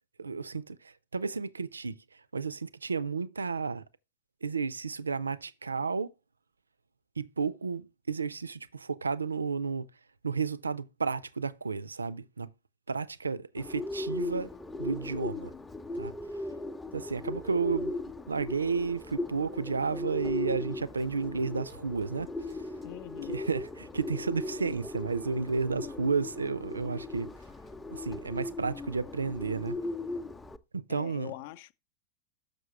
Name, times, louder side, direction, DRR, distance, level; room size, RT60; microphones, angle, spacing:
voice 1, 0.2-1.9 2.3-3.8 4.4-6.1 7.2-9.9 10.2-12.5 12.9-14.5 14.8-15.5 15.9-16.1 16.9-17.9 18.3-22.6 23.3-27.3 27.9-29.8 30.7-31.3, right 5 dB, 75° right, 0.4 m, -32 dB
Bird, 13.6-30.6, left 2 dB, 10° left, 0.6 m, -38 dB
voice 2, 22.8-23.4 30.9-31.7, left 15 dB, 50° left, 0.6 m, -43 dB
6.7 x 6.1 x 5.9 m
figure-of-eight pair, 90°, 0 cm